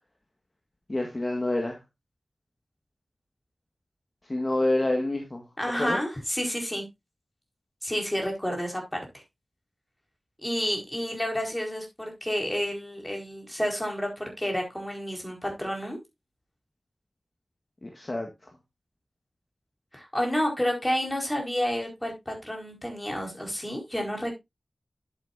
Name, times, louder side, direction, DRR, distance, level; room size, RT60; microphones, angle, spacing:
voice 1, 0.9-1.8 4.3-5.4 5.8-6.0 17.8-18.3, left 2 dB, 35° left, 2 dB, 1.8 m, -27 dB
voice 2, 5.6-6.8 7.8-9.0 10.4-16.0 19.9-24.3, equal, 15° left, 1 dB, 4.6 m, -30 dB
11.0 x 8.2 x 2.6 m, 0.21 s
wide cardioid pair, 70°, 0 cm